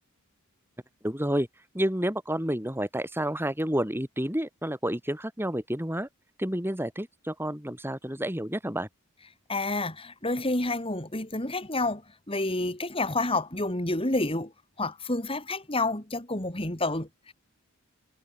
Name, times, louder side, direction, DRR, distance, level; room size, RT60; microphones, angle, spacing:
voice 1, 1.0-1.5 1.7-6.1 6.4-8.9, right 1 dB, 10° right, 4.0 m, -30 dB
voice 2, 9.5-12.0 12.3-14.5 14.8-17.3, left 2 dB, 25° left, 3.5 m, -29 dB
head